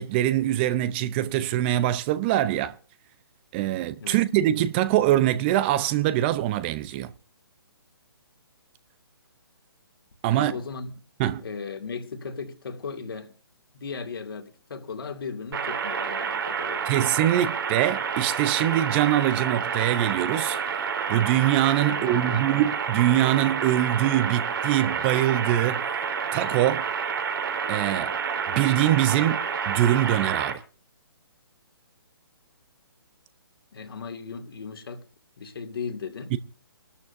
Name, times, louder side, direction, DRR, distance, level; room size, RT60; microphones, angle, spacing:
voice 1, 0.0-2.8 3.5-7.1 10.2-10.5 11.2-11.4 16.9-20.6 21.1-25.9 26.3-26.9 27.7-28.1 28.5-30.6 36.3-36.4, right 13 dB, 25° right, 0.6 m, -23 dB
voice 2, 10.3-10.9 11.4-13.3 13.7-16.9 21.9-22.5 33.7-35.0 35.4-36.3, left 5 dB, 65° left, 2.6 m, -36 dB
sound 1, 15.5-30.5, right 6 dB, 60° right, 3.9 m, -29 dB
26.5 x 12.5 x 2.7 m
figure-of-eight pair, 135°, 13 cm